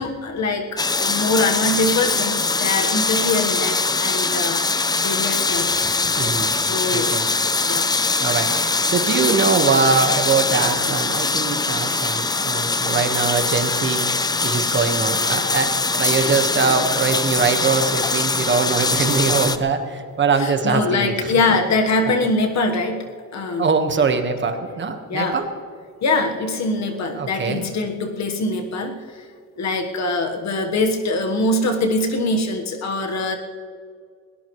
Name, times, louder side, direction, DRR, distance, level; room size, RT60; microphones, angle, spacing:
voice 1, 0.0-4.6 5.0-5.7 6.5-7.1 7.6-8.3 16.2-16.4 16.6-16.8 20.4-23.1 23.3-23.6 25.1-25.4 26.0-29.2 29.6-33.4, left 2 dB, 50° left, 4 dB, 1.4 m, -23 dB
sound 1, 0.8-19.6, left 3 dB, 10° left, 0.5 m, -22 dB
voice 2, 6.2-6.5 6.9-7.3 8.2-14.1 14.4-21.3 23.6-25.5 27.1-27.6, right 5 dB, 30° right, 6 dB, 1.5 m, -22 dB
20.5 x 18.5 x 3.2 m, 2.1 s
cardioid pair, 145°, 35 cm